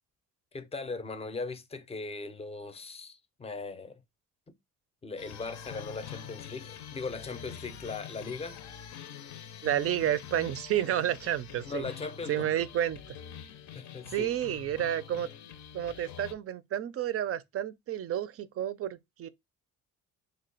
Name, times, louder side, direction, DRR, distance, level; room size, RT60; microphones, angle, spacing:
voice 1, 0.5-4.0 5.0-8.6 11.7-12.5 13.7-14.3, left 4 dB, 20° left, 0.5 m, -39 dB
sound 1, 5.2-16.3, left 9 dB, 75° left, 0.6 m, -45 dB
voice 2, 9.6-11.8 12.3-13.2 14.1-15.3 15.7-19.3, right 11 dB, 50° right, 0.4 m, -30 dB
3.1 x 2.3 x 3.8 m
cardioid pair, 90°, 30 cm